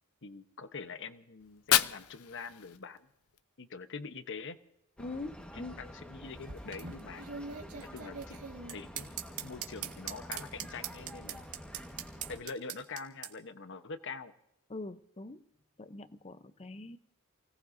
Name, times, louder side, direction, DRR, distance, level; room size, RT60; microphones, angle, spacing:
voice 1, 0.2-3.1 3.6-4.6 5.5-7.3 7.8-8.4 8.7-9.1 9.4-11.5 12.3-14.3, left 4 dB, 55° left, 10 dB, 1.0 m, -44 dB
Fire, 1.4-3.4, left 12 dB, 70° left, 0.6 m, -32 dB
voice 2, 5.0-5.8 14.7-15.5 15.8-17.0, left 2 dB, 30° left, 12 dB, 0.7 m, -43 dB
sound 1, 5.0-12.4, equal, 5° left, 1.4 m, -48 dB
sound 2, 6.2-13.3, right 8 dB, 80° right, 1.9 m, -42 dB
29.0 x 18.0 x 2.7 m, 0.81 s
head